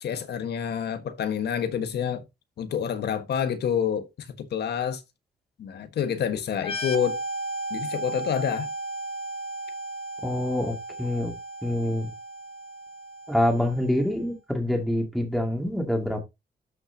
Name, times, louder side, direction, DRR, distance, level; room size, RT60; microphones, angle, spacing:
voice 1, 0.0-2.2 2.6-5.0 5.6-7.2 7.7-8.7, left 8 dB, 70° left, 1.4 m, -28 dB
sound 1, 6.6-14.1, right 2 dB, 35° left, 1.1 m, -35 dB
voice 2, 10.2-11.3 11.6-12.1 13.3-16.2, left 1 dB, ahead, 2.2 m, -26 dB
12.5 x 6.0 x 2.8 m
wide cardioid pair, 165°, 18 cm